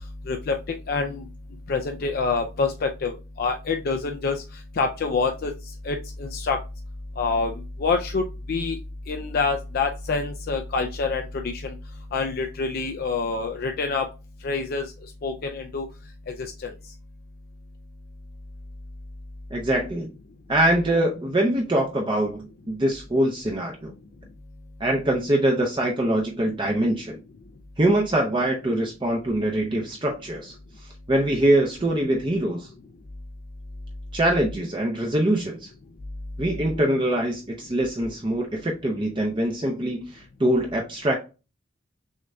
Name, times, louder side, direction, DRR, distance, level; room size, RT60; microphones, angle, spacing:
voice 1, 0.9-1.3 1.7-4.4 4.8-5.5 5.8-6.6 7.2-7.5 7.8-8.8 9.1-11.8 12.1-14.0 14.4-14.9 15.2-15.9 16.3-16.7, left 4 dB, 45° left, 0.4 m, -26 dB
voice 2, 19.5-20.1 20.5-23.9 24.8-27.2 27.8-30.6 31.1-32.7 34.1-35.7 36.4-41.1, right 1 dB, 25° right, 0.5 m, -23 dB
6.3 x 2.6 x 2.2 m
head